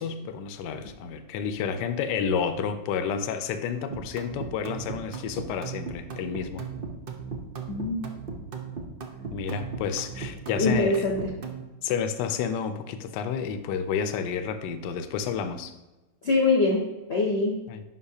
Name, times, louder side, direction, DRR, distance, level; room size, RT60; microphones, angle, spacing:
voice 1, 0.0-6.6 9.3-11.1 11.8-15.8 17.7-17.8, left 7 dB, 70° left, 10 dB, 1.2 m, -30 dB
sound 1, 3.9-11.6, right 5 dB, 85° right, 0.4 m, -36 dB
voice 2, 7.7-8.0 10.5-11.3 16.2-16.8 17.1-17.6, left 3 dB, 45° left, -1 dB, 0.8 m, -23 dB
9.6 x 5.7 x 2.8 m, 1.1 s
omnidirectional pair, 2.1 m